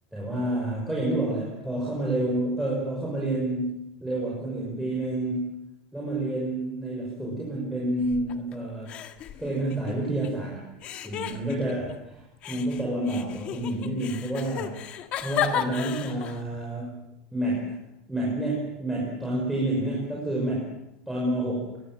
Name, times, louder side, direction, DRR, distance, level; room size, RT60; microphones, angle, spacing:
voice 1, 0.1-5.6 5.9-8.9 9.4-10.6 11.0-11.8 12.5-14.8 15.2-17.0 17.3-17.8 18.1-20.7 21.1-21.8, right 1 dB, 5° right, -5 dB, 5.8 m, -29 dB
sound 1, 8.0-8.6 8.9-10.3 10.8-12.0 12.4-16.4, left 9 dB, 35° left, 1.6 m, -33 dB
23.5 x 20.5 x 7.7 m, 0.87 s
cardioid pair, 175°, 4 cm